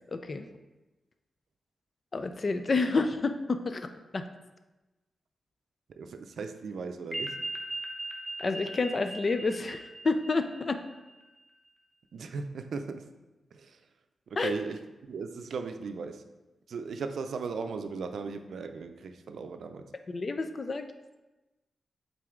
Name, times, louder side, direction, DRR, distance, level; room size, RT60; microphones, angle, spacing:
voice 1, 0.1-0.5 2.1-3.9 4.1-4.3 8.4-10.8 14.4-14.5 20.1-20.9, left 3 dB, 40° left, 8 dB, 0.5 m, -29 dB
voice 2, 6.0-7.4 12.1-13.1 13.5-13.8 14.3-16.2 16.7-19.9, right 5 dB, 75° right, 8 dB, 0.5 m, -37 dB
sound 1, 7.1-11.2, right 2 dB, 5° left, 1.1 m, -39 dB
7.7 x 4.0 x 3.7 m, 1.1 s
wide cardioid pair, 100°, 0 cm